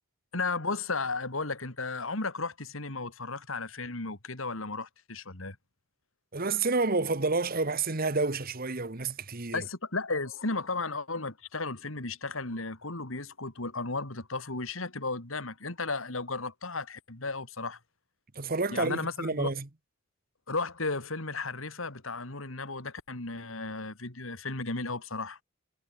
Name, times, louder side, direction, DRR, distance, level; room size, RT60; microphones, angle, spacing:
voice 1, 0.3-5.6 9.5-17.8 18.7-19.5 20.5-25.4, left 3 dB, 75° left, 3.2 m, -34 dB
voice 2, 6.3-9.6 18.3-19.7, right 3 dB, 45° right, 1.5 m, -29 dB
head